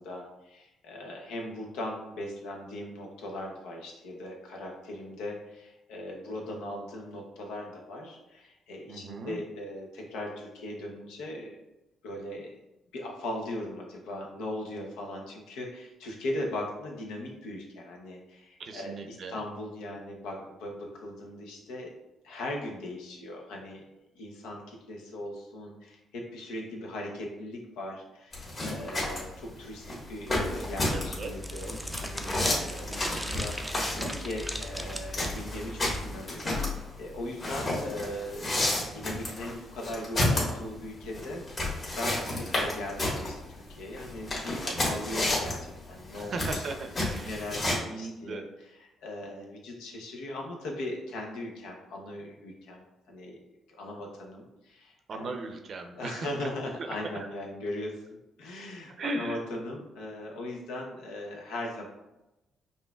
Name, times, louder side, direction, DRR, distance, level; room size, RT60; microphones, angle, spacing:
voice 1, 0.0-11.6 12.0-12.6 12.9-22.0 22.2-23.8 24.2-46.6 47.2-48.4 48.8-53.4 53.8-55.3 56.0-58.0 58.4-61.8, left 1 dB, 90° left, 0 dB, 0.7 m, -39 dB
voice 2, 8.9-9.4 18.6-19.4 30.9-31.3 44.6-45.0 46.2-48.5 49.2-49.3 55.1-56.5 56.8-56.9 59.0-59.4, right 2 dB, 55° right, 5 dB, 0.5 m, -38 dB
sound 1, 28.3-47.8, left 1 dB, 40° left, 1.4 m, -31 dB
sound 2, 30.3-36.2, equal, ahead, 0.4 m, -38 dB
5.4 x 2.5 x 2.3 m, 0.96 s
cardioid pair, 85°, 0 cm